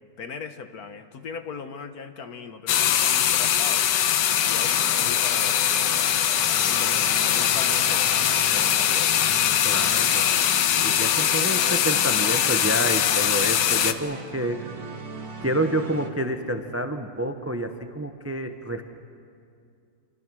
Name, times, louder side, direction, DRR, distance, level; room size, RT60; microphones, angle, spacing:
voice 1, 0.2-3.9 4.4-9.3, left 5 dB, 60° left, 8 dB, 1.5 m, -39 dB
sound 1, 2.7-13.9, left 10 dB, 80° left, 1.5 m, -22 dB
sound 2, 4.4-16.1, right 3 dB, 55° right, 2.3 m, -39 dB
voice 2, 9.6-10.5 10.8-14.7 15.4-18.8, right 1 dB, 15° right, 7 dB, 0.5 m, -28 dB
28.0 x 24.5 x 6.3 m, 2.4 s
omnidirectional pair, 1.9 m